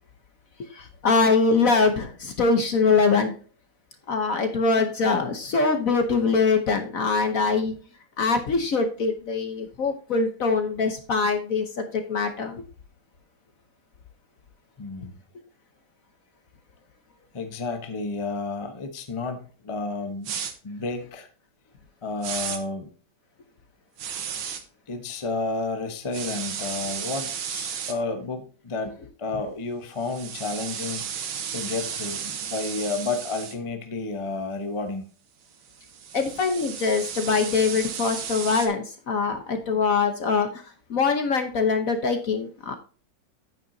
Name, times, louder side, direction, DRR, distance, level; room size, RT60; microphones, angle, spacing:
voice 1, 0.6-3.3 4.1-7.7 8.2-12.6 36.1-42.7, left 4 dB, 50° left, 1.2 m, -23 dB
voice 2, 14.8-15.2 17.3-20.3 20.6-21.3 22.0-22.9 24.9-31.1 31.5-35.0, left 3 dB, 25° left, 0.8 m, -31 dB
sound 1, 20.2-20.5 22.2-22.6 24.0-24.6 26.1-27.9 30.0-33.5 35.7-38.7, right 8 dB, 90° right, 1.9 m, -33 dB
9.2 x 9.1 x 2.7 m
omnidirectional pair, 2.1 m